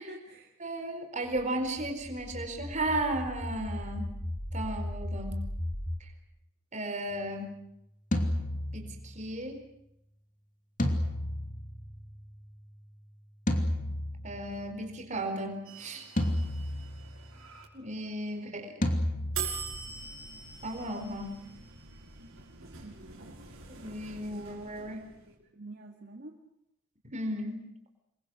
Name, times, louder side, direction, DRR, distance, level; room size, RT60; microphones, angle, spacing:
voice 1, 0.0-0.5 18.0-18.1 22.8-23.3 24.2-25.0 25.5-26.4, right 1 dB, 50° right, 1 dB, 2.4 m, -48 dB
voice 2, 0.6-4.1 4.5-5.5 6.0-6.1 6.7-7.5 8.7-9.6 14.2-16.0 17.7-18.7 20.6-21.4 23.7-25.0 27.0-27.7, right 1 dB, 35° right, 5 dB, 4.6 m, -35 dB
sound 1, 1.2-6.0, left 1 dB, 20° left, 3.5 m, -37 dB
sound 2, 8.1-9.3 10.8-12.3 13.5-14.7 16.2-17.4 18.8-19.9, left 1 dB, 35° left, 2.8 m, -31 dB
sound 3, 15.7-17.7 19.3-25.4, right 6 dB, 70° right, 5.9 m, -43 dB
28.0 x 23.0 x 6.5 m, 0.81 s
head